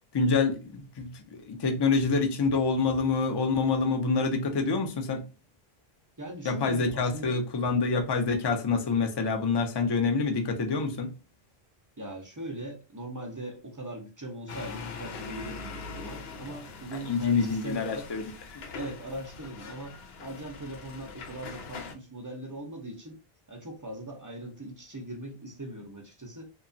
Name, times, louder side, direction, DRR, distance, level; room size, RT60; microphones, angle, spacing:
voice 1, 0.1-5.2 6.5-11.1 17.1-18.2, left 4 dB, 40° left, 0.4 m, -26 dB
voice 2, 6.2-7.4 12.0-18.1 18.7-23.2 23.5-26.5, right 1 dB, 25° right, 0.4 m, -40 dB
sound 1, 14.5-21.9, left 4 dB, 75° left, 0.8 m, -42 dB
2.8 x 2.3 x 2.5 m
omnidirectional pair, 1.1 m